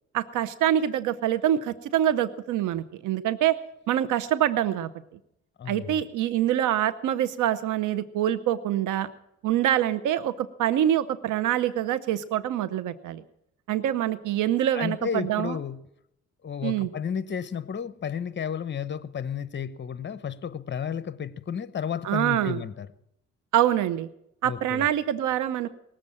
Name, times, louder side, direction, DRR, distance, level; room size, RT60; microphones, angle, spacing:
voice 1, 0.1-3.6 3.9-4.9 5.7-9.1 9.4-13.2 13.7-15.6 16.6-16.9 22.0-22.6 23.5-24.1 24.4-25.7, right 11 dB, 85° right, 14 dB, 0.7 m, -25 dB
voice 2, 5.6-6.0 14.7-15.8 16.4-22.9 24.4-24.9, left 7 dB, 35° left, 15 dB, 0.9 m, -32 dB
19.5 x 7.7 x 8.7 m, 0.80 s
cardioid pair, 90°, 30 cm